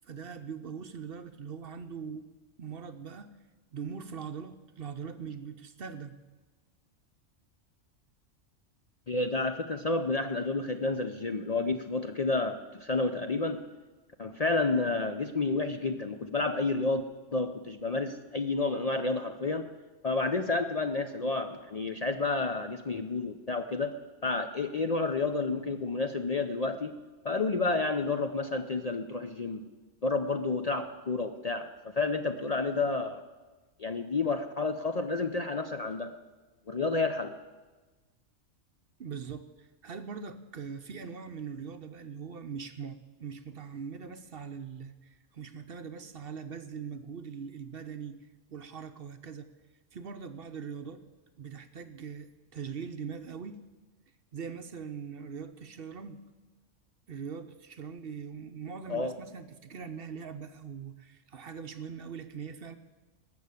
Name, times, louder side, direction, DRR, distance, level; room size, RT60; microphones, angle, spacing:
voice 1, 0.0-2.3 2.6-3.3 3.7-6.2 39.0-49.5 49.9-51.0 51.4-53.6 54.3-56.2 57.1-62.7, right 6 dB, 55° right, 9 dB, 0.8 m, -41 dB
voice 2, 9.1-13.6 14.2-17.0 17.3-19.7 20.0-23.9 24.2-26.9 27.2-29.6 30.0-33.2 33.8-36.1 36.7-37.3 58.9-59.1, left 3 dB, 40° left, 7 dB, 0.6 m, -30 dB
19.0 x 6.8 x 8.3 m, 1.2 s
omnidirectional pair, 1.3 m